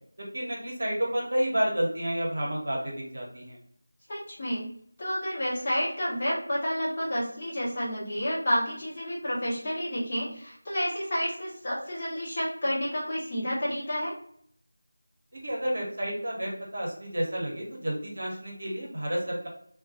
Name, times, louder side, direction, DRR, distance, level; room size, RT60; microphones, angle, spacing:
voice 1, 0.3-3.6 15.3-19.5, right 1 dB, 50° right, -2 dB, 0.9 m, -30 dB
voice 2, 4.1-4.6 5.0-14.1, equal, 30° left, -8 dB, 0.9 m, -30 dB
2.3 x 2.2 x 2.6 m, 0.64 s
figure-of-eight pair, 170°, 0 cm